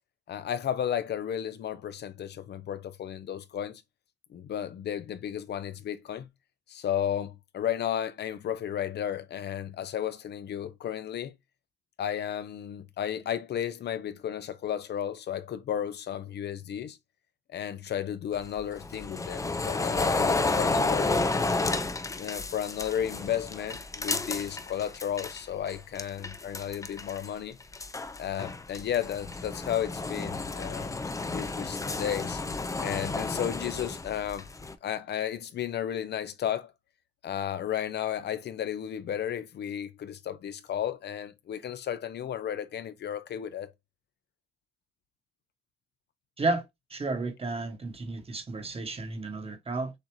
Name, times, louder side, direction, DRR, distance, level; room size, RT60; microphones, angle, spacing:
voice 1, 0.3-3.8 4.3-6.3 6.7-11.3 12.0-17.0 17.5-21.1 22.2-27.6 28.2-30.9 31.3-32.4 32.8-34.5 34.8-36.7 37.2-43.7, left 9 dB, 55° left, 0.6 m, -33 dB
sound 1, 18.3-25.4 25.7-27.3 27.6-34.7, left 3 dB, 15° left, 0.5 m, -31 dB
voice 2, 46.9-49.9, right 3 dB, 30° right, 1.2 m, -32 dB
6.7 x 2.4 x 3.0 m
cardioid pair, 90°, 20 cm